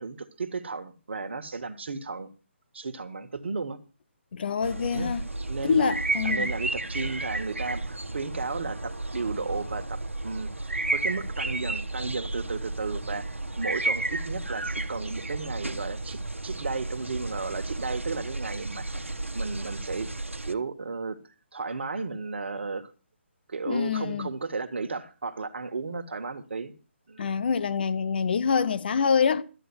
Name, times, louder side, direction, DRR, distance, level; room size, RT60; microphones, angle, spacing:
voice 1, 0.0-2.3 2.7-3.8 4.9-5.1 5.5-5.9 6.2-10.5 10.9-20.1 20.4-21.2 21.5-22.9 23.5-26.7 27.1-27.3, right 4 dB, 60° right, 1.7 m, -34 dB
voice 2, 4.3-5.2 5.6-6.5 23.7-24.3 27.2-29.4, left 6 dB, 50° left, 1.0 m, -25 dB
sound 1, 4.6-20.5, right 2 dB, 85° right, 1.2 m, -32 dB
13.0 x 9.0 x 6.1 m
figure-of-eight pair, 140°, 7 cm